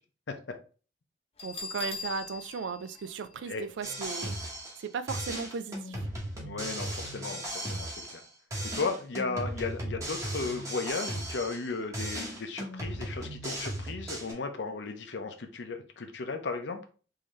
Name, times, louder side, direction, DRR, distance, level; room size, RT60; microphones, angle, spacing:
Bell, 1.4-4.1, left 4 dB, 35° left, 0.7 m, -41 dB
voice 1, 1.4-4.4 4.8-5.9, right 5 dB, 85° right, 0.4 m, -36 dB
sound 1, 3.8-4.8 5.1-8.2 8.5-11.7 11.9-14.3, right 1 dB, 15° right, 1.0 m, -36 dB
voice 2, 6.4-8.0 8.7-16.8, left 4 dB, 75° left, 0.6 m, -35 dB
3.7 x 2.7 x 3.1 m
head